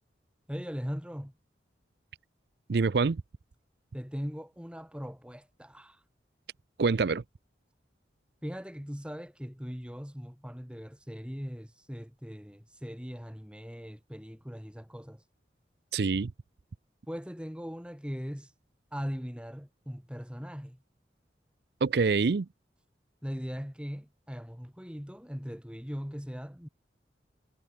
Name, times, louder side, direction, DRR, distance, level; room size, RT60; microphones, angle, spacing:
voice 1, 0.5-1.3 3.9-6.0 8.4-15.2 17.1-18.5 18.9-20.8 23.2-26.7, equal, 5° right, 3.1 m, -40 dB
voice 2, 2.7-3.2 6.8-7.2 15.9-16.3 21.8-22.5, right 4 dB, 65° right, 0.5 m, -25 dB
head